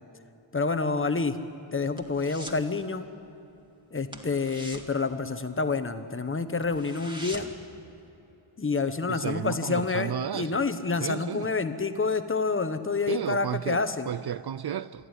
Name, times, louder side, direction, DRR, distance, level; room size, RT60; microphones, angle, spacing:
voice 1, 0.5-1.3 1.7-3.0 3.9-7.5 8.6-14.1, left 4 dB, 25° left, 1.2 m, -28 dB
sound 1, 1.5-2.7 3.0-3.3 3.5-3.7 4.0-5.9 6.3-6.4 6.6-7.7 8.1-8.2, equal, 10° right, 2.1 m, -43 dB
voice 2, 9.1-10.7 11.0-11.5 13.1-15.1, right 10 dB, 55° right, 0.6 m, -33 dB
28.0 x 11.0 x 9.8 m
wide cardioid pair, 100°, 47 cm